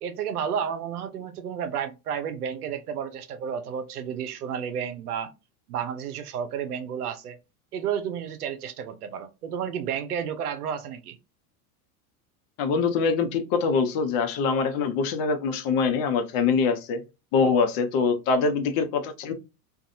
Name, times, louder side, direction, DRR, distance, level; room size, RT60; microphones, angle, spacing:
voice 1, 0.0-5.3 5.7-7.4 7.7-11.2, right 8 dB, 85° right, 0.7 m, -31 dB
voice 2, 12.6-17.0 17.3-19.3, left 5 dB, 50° left, 0.8 m, -24 dB
2.6 x 2.4 x 2.7 m
hypercardioid pair, 85°, 45 cm